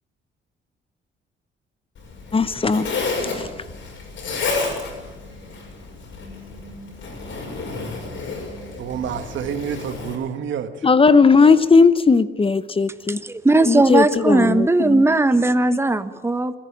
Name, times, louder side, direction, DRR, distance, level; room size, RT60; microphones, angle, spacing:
Zipper (clothing), 1.9-10.1, left 3 dB, 70° left, 6.6 m, -31 dB
voice 1, 2.3-2.9 3.2-3.5 10.8-13.2 13.7-15.0 15.7-15.8, left 4 dB, 25° left, 1.0 m, -17 dB
voice 2, 8.8-10.9, right 8 dB, 70° right, 1.7 m, -28 dB
voice 3, 13.1-16.5, right 2 dB, 10° right, 1.2 m, -18 dB
28.0 x 11.0 x 8.8 m
cardioid pair, 90°, 20 cm